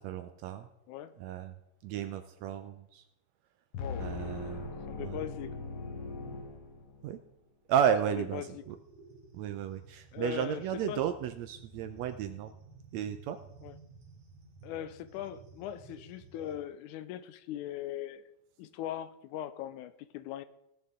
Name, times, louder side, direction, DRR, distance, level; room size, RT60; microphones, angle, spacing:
voice 1, 0.0-0.7 1.2-1.5 1.8-3.0 4.0-4.7 5.0-5.2 7.0-7.2 7.7-8.8 9.3-12.5 12.9-13.4, right 9 dB, 75° right, 1.6 m, -33 dB
sound 1, 3.7-7.2, left 4 dB, 55° left, 1.9 m, -40 dB
voice 2, 4.9-5.6 8.3-8.6 10.1-10.6 10.9-11.0 13.6-13.8 14.6-18.2 18.6-20.4, left 11 dB, 80° left, 2.0 m, -40 dB
sound 2, 8.5-16.6, right 4 dB, 45° right, 2.3 m, -54 dB
18.0 x 6.7 x 3.7 m
omnidirectional pair, 3.5 m